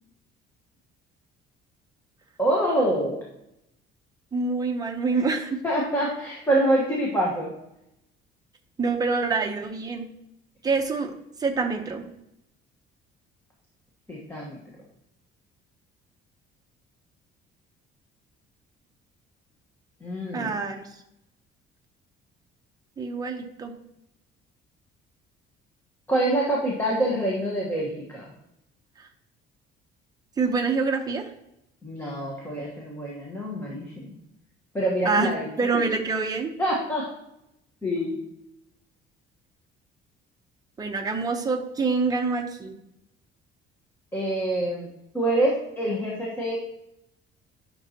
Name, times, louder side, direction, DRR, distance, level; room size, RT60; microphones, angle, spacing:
voice 1, 2.4-3.2 5.6-7.5 14.1-14.6 20.0-20.5 26.1-28.2 31.8-34.1 34.7-35.5 36.6-37.1 37.8-38.2 44.1-44.9 45.1-46.6, right 1 dB, 10° left, -4 dB, 1.3 m, -26 dB
voice 2, 4.3-5.6 8.8-10.0 10.6-11.1 11.4-12.0 20.3-20.9 23.0-23.7 29.0-29.1 30.4-31.3 35.0-35.3 35.6-36.5 40.8-42.8, right 4 dB, 20° right, 3 dB, 0.8 m, -26 dB
9.8 x 6.1 x 2.9 m, 0.84 s
cardioid pair, 170°, 21 cm